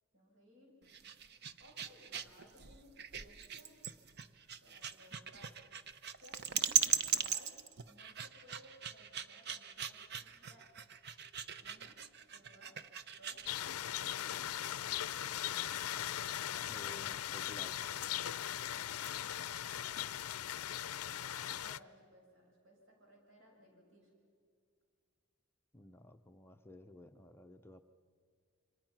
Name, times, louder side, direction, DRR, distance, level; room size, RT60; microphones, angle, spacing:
voice 1, 0.1-0.7 1.6-3.8 4.6-5.7 6.2-7.6 7.9-10.7 11.6-12.0 12.3-12.8 13.2-13.5 13.8-15.4 20.8-24.1, equal, 65° right, -1 dB, 7.2 m, -61 dB
sound 1, 0.8-13.5, right 8 dB, 50° right, 0.7 m, -39 dB
sound 2, 13.4-21.8, left 11 dB, 90° left, 0.5 m, -39 dB
voice 2, 16.7-17.8 25.7-27.8, left 1 dB, 10° left, 6 dB, 0.6 m, -54 dB
27.5 x 25.5 x 6.0 m, 2.2 s
head